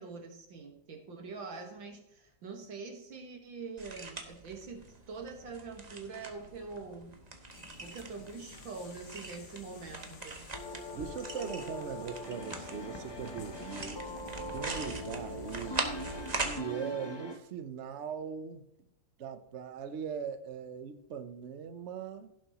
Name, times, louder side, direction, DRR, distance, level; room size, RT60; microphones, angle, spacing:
voice 1, 0.0-7.2 7.8-10.5, right 4 dB, 75° right, 2.4 m, -44 dB
sound 1, 3.8-16.6, right 3 dB, 25° right, 1.0 m, -42 dB
sound 2, 7.5-16.5, left 4 dB, 50° left, 1.0 m, -54 dB
sound 3, 10.5-17.4, left 1 dB, 25° left, 0.5 m, -42 dB
voice 2, 10.9-14.0 14.5-15.9 16.4-18.6 19.2-22.3, right 7 dB, 60° right, 0.7 m, -40 dB
16.5 x 7.4 x 3.0 m
omnidirectional pair, 2.1 m